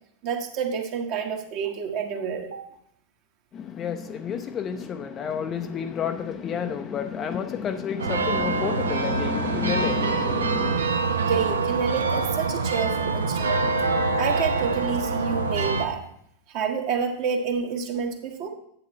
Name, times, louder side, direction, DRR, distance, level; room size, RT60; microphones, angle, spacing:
voice 1, 0.2-2.6 11.2-13.7 14.1-16.0 16.5-18.5, right 6 dB, 45° right, 3 dB, 1.5 m, -28 dB
voice 2, 3.5-10.8, left 7 dB, 25° left, 7 dB, 0.6 m, -30 dB
sound 1, 8.0-15.9, right 3 dB, 70° right, 0.8 m, -25 dB
10.5 x 8.4 x 3.1 m, 0.69 s
figure-of-eight pair, 90°, 0 cm